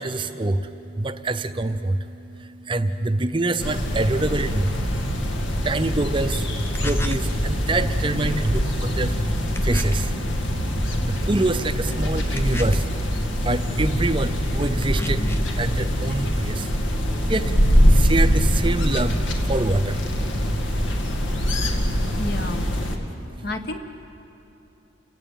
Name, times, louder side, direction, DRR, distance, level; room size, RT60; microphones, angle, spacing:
voice 1, 0.0-4.8 5.6-6.5 6.8-9.2 9.6-10.1 11.0-12.9 13.4-15.3 15.6-16.8 17.3-20.1, right 2 dB, 25° right, 10 dB, 0.6 m, -25 dB
sound 1, 3.6-23.0, equal, 75° left, 2.2 m, -23 dB
sound 2, 6.7-7.3 9.6-10.1 12.4-13.0 14.8-15.6, equal, 15° left, 0.7 m, -27 dB
voice 2, 22.2-22.8 23.4-23.8, left 2 dB, 50° left, 6 dB, 1.5 m, -30 dB
29.5 x 16.0 x 9.0 m, 2.9 s
head